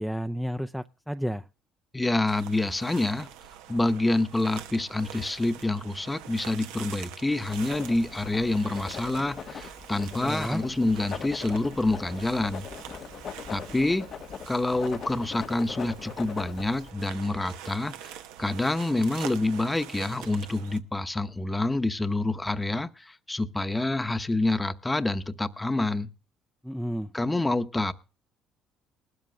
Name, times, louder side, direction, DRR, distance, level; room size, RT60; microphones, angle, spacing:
voice 1, 0.0-1.5 10.2-10.6 26.6-27.1, equal, ahead, 9 dB, 0.5 m, -31 dB
voice 2, 1.9-3.3 3.7-12.7 13.5-14.0 14.5-18.1 18.4-26.1 27.1-27.9, left 2 dB, 15° left, 10 dB, 0.9 m, -27 dB
sound 1, 2.3-20.8, right 10 dB, 85° right, 1.0 m, -45 dB
Writing, 7.5-16.9, left 7 dB, 50° left, 0.8 m, -41 dB
19.5 x 13.0 x 2.3 m, 0.35 s
supercardioid pair, 80°, 0 cm